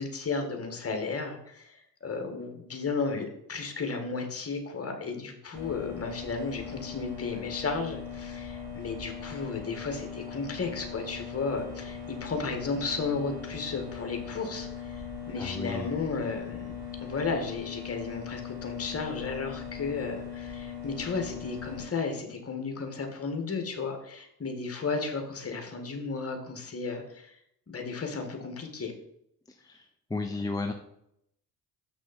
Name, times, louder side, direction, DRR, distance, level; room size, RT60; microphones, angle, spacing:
voice 1, 0.0-16.7 17.0-27.4 27.7-28.9, left 4 dB, 30° left, 4 dB, 2.0 m, -34 dB
sound 1, 5.5-21.8, left 7 dB, 60° right, 2.6 m, -40 dB
voice 2, 15.4-15.9 29.6-30.7, left 3 dB, 10° left, 4 dB, 0.7 m, -34 dB
7.1 x 6.0 x 4.3 m, 0.75 s
hypercardioid pair, 55°, 48 cm